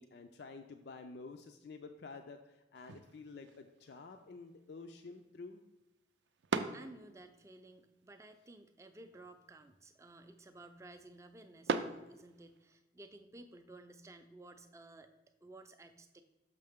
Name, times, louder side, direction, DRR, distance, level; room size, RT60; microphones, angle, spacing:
voice 1, 0.0-5.6, left 4 dB, 65° left, 6 dB, 0.4 m, -50 dB
sound 1, 2.7-12.8, right 4 dB, 75° right, 0.4 m, -44 dB
voice 2, 6.7-15.1 15.4-16.2, right 2 dB, 15° right, 7 dB, 0.4 m, -55 dB
6.6 x 5.7 x 3.5 m, 1.0 s
head